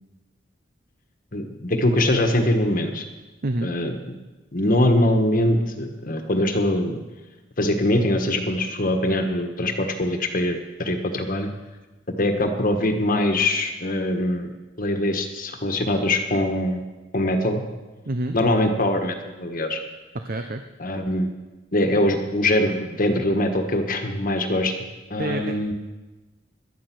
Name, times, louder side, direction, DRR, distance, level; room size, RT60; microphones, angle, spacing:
voice 1, 1.3-3.0 3.6-3.9 4.5-7.0 7.6-11.5 12.2-14.5 14.8-16.8 17.1-17.6 18.3-19.8 20.8-21.3 21.7-24.7 25.1-25.7, left 1 dB, 45° left, 5 dB, 1.4 m, -22 dB
voice 2, 18.0-18.4 20.1-20.6 25.2-25.7, right 1 dB, 50° right, 7 dB, 0.8 m, -28 dB
18.5 x 12.0 x 6.1 m, 1.2 s
head